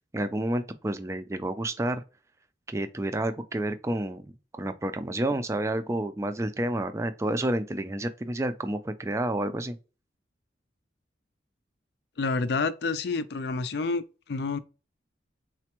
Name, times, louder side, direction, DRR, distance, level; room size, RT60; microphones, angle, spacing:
voice 1, 0.1-2.0 2.7-4.3 4.5-9.8, right 1 dB, 15° right, 0.3 m, -29 dB
voice 2, 12.2-14.0 14.3-14.6, left 4 dB, 60° left, 0.4 m, -28 dB
4.2 x 2.2 x 2.9 m
head